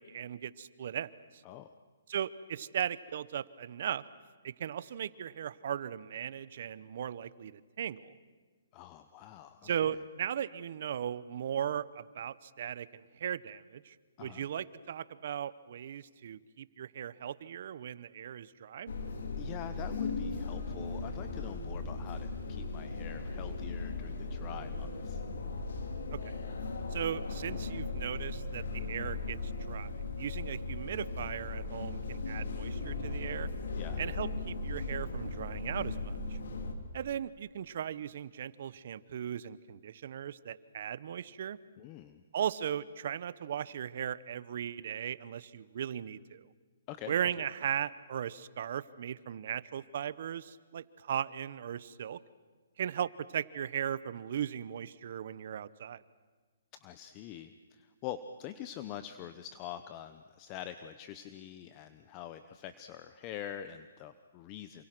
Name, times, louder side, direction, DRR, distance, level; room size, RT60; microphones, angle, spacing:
voice 1, 0.0-1.4 2.1-4.0 4.4-8.1 9.6-18.9 26.1-26.3 26.9-29.9 30.2-33.5 34.0-36.4 36.9-41.6 42.3-46.5 47.1-52.2 52.8-56.0, right 9 dB, 55° right, 18 dB, 0.9 m, -37 dB
voice 2, 8.7-9.7 14.2-14.4 19.4-25.2 33.7-34.0 41.8-42.2 46.9-47.4 56.8-64.8, left 10 dB, 30° left, 10 dB, 1.0 m, -45 dB
sound 1, 18.9-36.7, left 3 dB, 75° left, 3.4 m, -37 dB
28.0 x 26.5 x 6.2 m, 1.4 s
hypercardioid pair, 150°, 0 cm